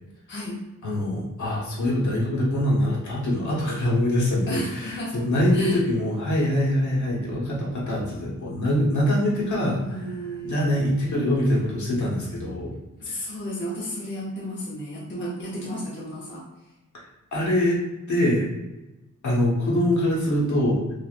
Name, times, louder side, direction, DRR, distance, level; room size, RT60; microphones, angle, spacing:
voice 1, 0.8-12.7 13.1-13.2 16.9-17.0 17.3-17.8 18.1-18.5 19.2-20.8, left 1 dB, 65° left, -5 dB, 1.1 m, -24 dB
voice 2, 4.5-5.3 5.5-5.8 9.8-10.7 13.0-16.4, equal, 35° left, -6 dB, 0.8 m, -33 dB
3.3 x 2.5 x 2.4 m, 1.0 s
wide cardioid pair, 125°, 32 cm